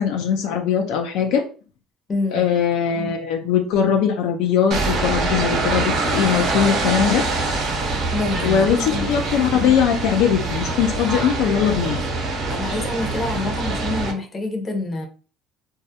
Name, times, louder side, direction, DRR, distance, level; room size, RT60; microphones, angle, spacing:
voice 1, 0.0-1.4 2.3-7.2 8.4-12.0, left 8 dB, 80° left, 3 dB, 0.4 m, -20 dB
voice 2, 2.1-2.5 8.1-9.4 12.5-15.1, left 2 dB, 30° left, 4 dB, 0.6 m, -27 dB
sound 1, 4.7-14.1, right 3 dB, 55° right, 0.6 m, -24 dB
2.3 x 2.0 x 2.7 m, 0.37 s
cardioid pair, 110°, 0 cm